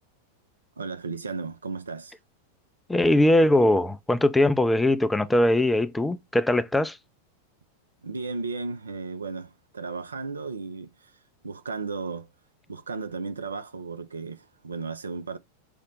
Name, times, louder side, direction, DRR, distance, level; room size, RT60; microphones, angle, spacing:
voice 1, 0.8-2.1 8.0-11.1 11.4-12.3 12.7-15.4, right 4 dB, 75° right, 0.4 m, -34 dB
voice 2, 2.9-7.0, left 1 dB, 5° left, 0.4 m, -21 dB
5.1 x 2.1 x 3.7 m
figure-of-eight pair, 90°, 0 cm